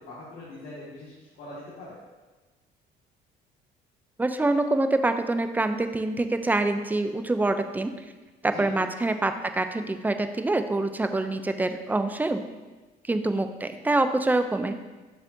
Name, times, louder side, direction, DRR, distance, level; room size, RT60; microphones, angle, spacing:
voice 1, 0.1-1.9 8.4-8.7, left 1 dB, 70° left, -8 dB, 1.8 m, -42 dB
voice 2, 4.2-7.9 8.4-12.5 13.1-14.8, right 2 dB, 10° right, 9 dB, 0.3 m, -25 dB
6.9 x 5.5 x 2.6 m, 1.2 s
cardioid pair, 110°, 17 cm